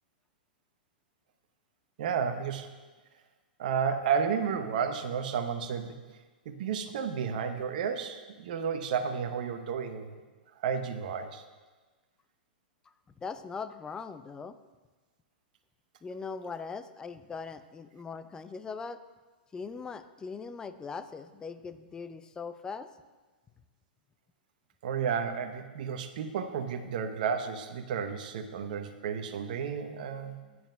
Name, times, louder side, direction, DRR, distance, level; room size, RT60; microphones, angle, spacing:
voice 1, 2.0-2.7 3.6-5.9 6.5-10.2 10.6-11.4 24.8-30.4, right 7 dB, 55° right, 7 dB, 0.9 m, -32 dB
voice 2, 13.2-14.6 16.0-19.0 19.5-22.9 30.2-30.6, left 5 dB, 15° left, 11 dB, 0.5 m, -40 dB
15.5 x 9.4 x 2.3 m, 1.3 s
hypercardioid pair, 110°, 5 cm